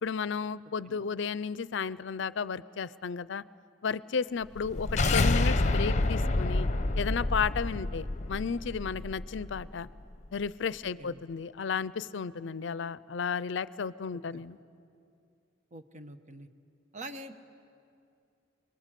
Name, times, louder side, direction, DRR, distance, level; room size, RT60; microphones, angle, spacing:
voice 1, 0.0-3.4 3.8-6.7 7.0-9.9 10.3-14.6, left 6 dB, 70° left, 18 dB, 0.5 m, -33 dB
sound 1, 4.6-9.7, left 2 dB, 40° left, 0.8 m, -28 dB
voice 2, 15.7-16.5 16.9-17.3, right 1 dB, 40° right, 8 dB, 1.1 m, -44 dB
29.5 x 21.5 x 7.5 m, 2.5 s
head